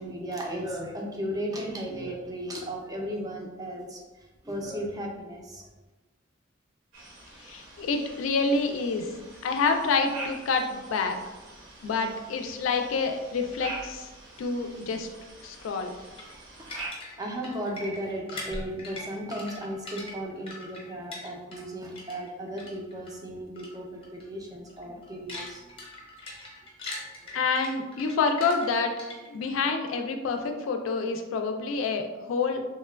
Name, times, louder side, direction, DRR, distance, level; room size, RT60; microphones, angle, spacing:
voice 1, 0.0-5.7 17.2-25.7 27.2-27.4, equal, 20° right, 0 dB, 0.4 m, -35 dB
sound 1, 6.9-16.9, right 2 dB, 75° right, 0.8 m, -45 dB
voice 2, 7.4-9.1 9.4-11.2 11.8-14.1 14.4-15.1 15.4-15.9 27.3-29.0 29.3-32.6, left 4 dB, 80° left, 5 dB, 0.3 m, -27 dB
sound 2, 16.2-21.7 22.0-23.1 23.6-23.8 24.0-24.2 24.7-29.5, left 1 dB, 30° left, 0.6 m, -41 dB
3.0 x 2.1 x 2.2 m, 1.2 s
head